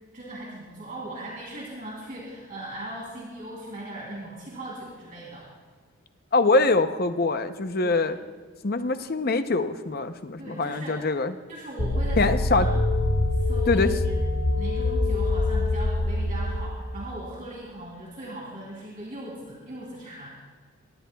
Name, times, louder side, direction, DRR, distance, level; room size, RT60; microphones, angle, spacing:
voice 1, 0.1-5.5 7.8-8.0 10.4-11.0 11.5-12.7 13.3-14.2 14.6-20.3, right 1 dB, 40° right, -4 dB, 3.1 m, -39 dB
voice 2, 6.3-8.2 8.6-11.3 12.2-12.7 13.7-14.0, left 3 dB, 45° left, 9 dB, 0.7 m, -24 dB
sound 1, 11.8-16.8, left 2 dB, 90° left, 1.6 m, -24 dB
23.5 x 19.5 x 2.3 m, 1.5 s
head